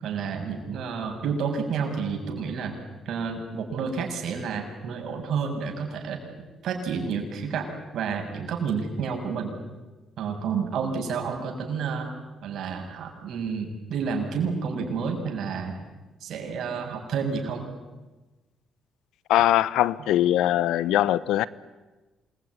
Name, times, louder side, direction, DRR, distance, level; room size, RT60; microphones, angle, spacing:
voice 1, 0.0-2.8 3.0-6.2 6.6-7.7 7.9-9.5 10.2-12.1 12.4-15.8 16.2-17.6, right 5 dB, 70° right, 3 dB, 6.8 m, -30 dB
voice 2, 19.3-21.5, left 13 dB, 90° left, 19 dB, 0.9 m, -21 dB
27.0 x 22.0 x 9.8 m, 1.2 s
cardioid pair, 90°, 0 cm